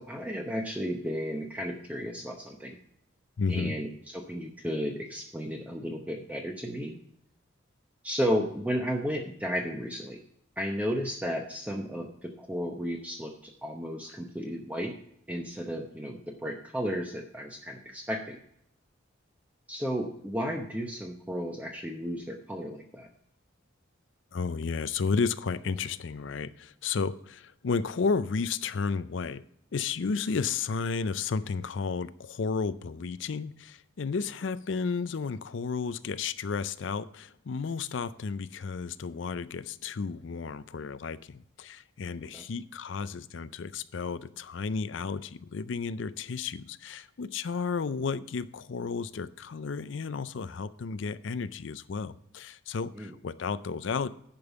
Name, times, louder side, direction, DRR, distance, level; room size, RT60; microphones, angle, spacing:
voice 1, 0.0-2.8 3.5-7.0 8.0-10.2 10.6-14.9 15.3-18.4 19.7-23.1 42.3-42.4 52.9-53.2, equal, 5° right, 2 dB, 0.8 m, -33 dB
voice 2, 3.4-3.7 24.3-29.4 29.7-54.1, left 5 dB, 65° left, 15 dB, 0.5 m, -32 dB
10.5 x 5.3 x 6.9 m, 0.71 s
head